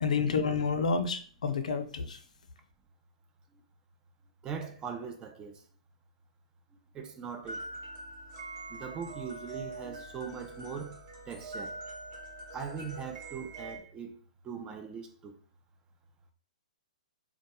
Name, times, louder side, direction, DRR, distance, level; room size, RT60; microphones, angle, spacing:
voice 1, 0.0-2.2, left 5 dB, 80° left, 0.4 m, -29 dB
voice 2, 4.4-5.6 6.9-7.7 8.7-11.0 11.3-11.8 12.5-14.1 14.4-15.4, right 6 dB, 20° right, 0.3 m, -40 dB
sound 1, 7.4-13.8, right 2 dB, 40° right, 0.9 m, -44 dB
2.2 x 2.2 x 2.8 m
hypercardioid pair, 125°, 4 cm